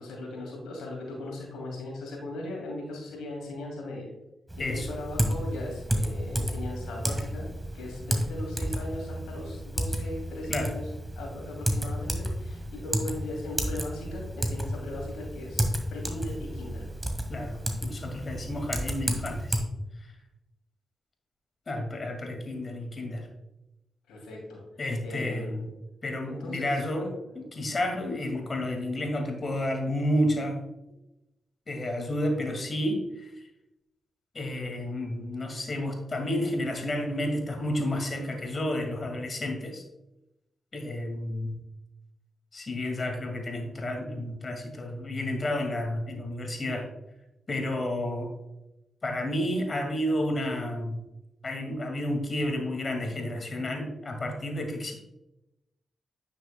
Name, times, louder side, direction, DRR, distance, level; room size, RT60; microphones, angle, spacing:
voice 1, 0.0-4.1 4.6-7.5 7.7-16.9 22.2-22.3 24.1-24.6 25.0-25.7 26.2-27.4, left 1 dB, 85° left, -1 dB, 2.7 m, -38 dB
Typing, 4.5-19.6, equal, 15° right, 1.8 m, -32 dB
voice 2, 17.3-19.6 20.0-20.1 21.7-23.3 24.8-25.6 26.0-27.0 27.5-30.6 31.7-33.5 34.3-39.8 40.7-41.6 42.5-46.9 47.5-48.3 49.0-51.0 51.4-54.9, left 1 dB, 45° left, 3 dB, 2.0 m, -31 dB
9.6 x 6.6 x 2.2 m, 0.93 s
supercardioid pair, 45°, 0 cm